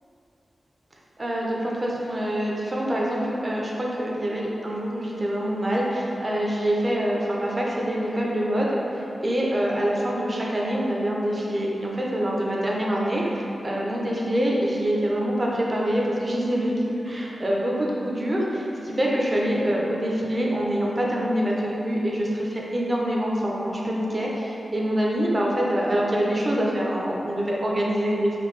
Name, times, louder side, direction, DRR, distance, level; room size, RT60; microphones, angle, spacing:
voice 1, 1.2-28.4, equal, 30° right, -3 dB, 0.5 m, -25 dB
3.4 x 2.6 x 3.1 m, 3.0 s
wide cardioid pair, 150°, 0 cm